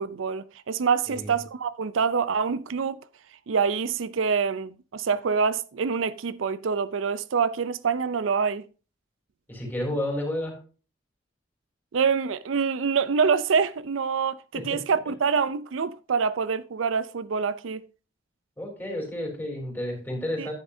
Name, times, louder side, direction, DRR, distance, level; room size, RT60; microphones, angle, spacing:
voice 1, 0.0-3.0 3.5-8.6 11.9-17.9 20.4-20.5, right 6 dB, 85° right, 0.5 m, -26 dB
voice 2, 9.5-10.5 14.5-14.6 18.6-20.5, left 1 dB, 10° left, 3.5 m, -31 dB
10.5 x 9.5 x 2.7 m
head